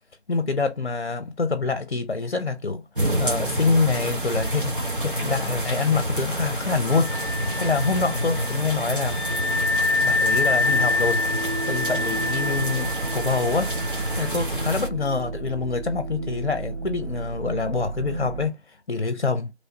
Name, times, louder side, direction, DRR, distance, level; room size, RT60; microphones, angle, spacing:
voice 1, 0.3-2.8 3.2-9.2 10.0-11.2 11.7-13.7 14.2-19.5, left 4 dB, 60° left, 0.6 m, -26 dB
sound 1, 3.0-14.9, right 1 dB, 50° right, 1.2 m, -28 dB
Wind instrument woodwind instrument, 6.8-14.3, left 3 dB, ahead, 0.6 m, -27 dB
sound 2, 9.3-18.5, right 3 dB, 85° right, 0.7 m, -35 dB
3.1 x 2.8 x 2.8 m
figure-of-eight pair, 175°, 33 cm